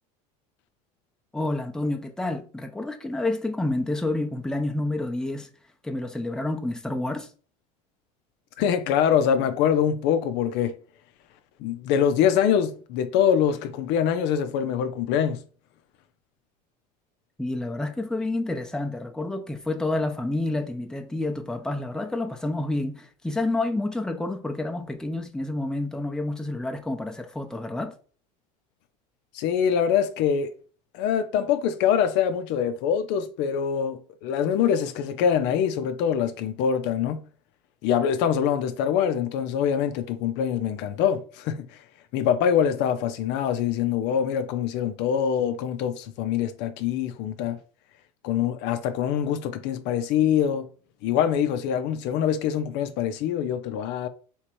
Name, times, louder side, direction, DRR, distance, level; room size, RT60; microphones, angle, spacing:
voice 1, 1.3-5.5 5.8-7.3 17.4-27.9, left 2 dB, 5° left, 0.7 m, -29 dB
voice 2, 8.6-10.7 11.6-15.4 29.3-30.5 30.9-37.2 37.8-41.8 42.1-47.6 48.2-50.7 51.0-54.1, left 8 dB, 60° left, 0.6 m, -24 dB
3.6 x 2.9 x 4.5 m
hypercardioid pair, 85°, 20 cm